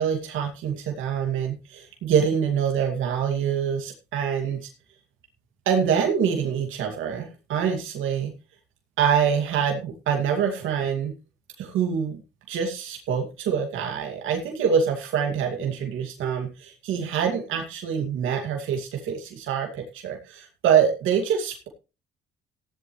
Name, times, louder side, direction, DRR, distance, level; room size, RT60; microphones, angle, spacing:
voice 1, 0.0-4.7 5.7-8.3 9.0-11.1 11.6-12.2 12.5-21.7, right 7 dB, 85° right, 2 dB, 2.4 m, -25 dB
15.0 x 11.0 x 3.2 m, 0.31 s
cardioid pair, 90°, 20 cm